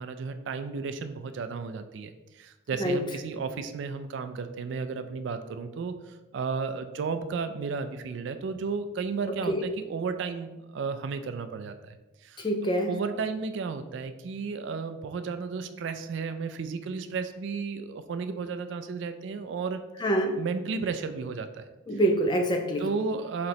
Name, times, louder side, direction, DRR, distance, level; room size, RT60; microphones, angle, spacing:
voice 1, 0.0-2.1 2.4-5.9 6.3-11.7 12.2-12.4 12.9-19.8 20.4-21.6 22.8-23.5, right 5 dB, 60° right, 9 dB, 0.3 m, -33 dB
voice 2, 12.4-12.9 20.0-20.4 21.9-22.9, right 1 dB, 20° left, 3 dB, 0.4 m, -25 dB
4.3 x 3.8 x 3.1 m, 1.1 s
head